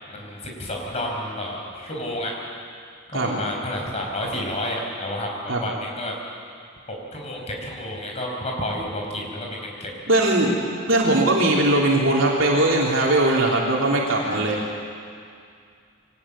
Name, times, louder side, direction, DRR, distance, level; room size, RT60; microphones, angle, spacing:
voice 1, 0.1-2.3 3.1-6.1 7.1-9.9 14.2-14.5, left 1 dB, 30° left, 0 dB, 5.0 m, -30 dB
voice 2, 10.1-10.6 10.9-14.6, right 1 dB, 70° right, -3 dB, 3.4 m, -20 dB
24.0 x 19.0 x 8.6 m, 2.3 s
head